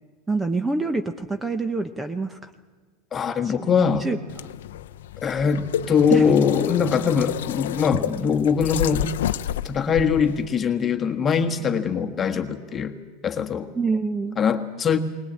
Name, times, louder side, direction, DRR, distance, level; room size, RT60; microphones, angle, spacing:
voice 1, 0.3-2.4 3.4-3.7 4.0-4.2 6.1-6.3 13.8-14.4, right 3 dB, 10° right, 9 dB, 0.9 m, -26 dB
voice 2, 3.1-4.0 5.2-9.0 9.6-12.9 13.2-13.7 14.4-15.0, left 6 dB, 25° left, 5 dB, 1.5 m, -22 dB
sound 1, 4.3-10.5, left 11 dB, 90° left, 0.6 m, -29 dB
20.0 x 19.0 x 8.7 m, 1.4 s
supercardioid pair, 125°, 0 cm